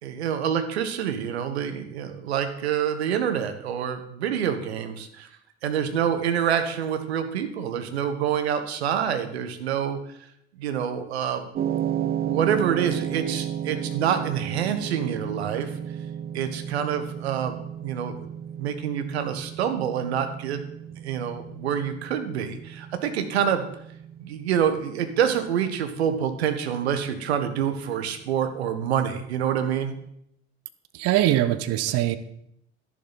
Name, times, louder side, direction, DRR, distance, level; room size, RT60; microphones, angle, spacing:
voice 1, 0.0-5.3 5.6-10.0 10.6-11.5 11.8-15.7 16.3-18.1 18.6-20.6 21.0-23.7 24.2-30.0, right 8 dB, 70° right, 8 dB, 1.4 m, -27 dB
sound 1, 11.6-29.8, right 9 dB, 25° right, 0.6 m, -34 dB
voice 2, 30.9-32.2, right 13 dB, 45° right, 13 dB, 0.9 m, -22 dB
12.0 x 11.0 x 4.1 m, 0.73 s
figure-of-eight pair, 65°, 34 cm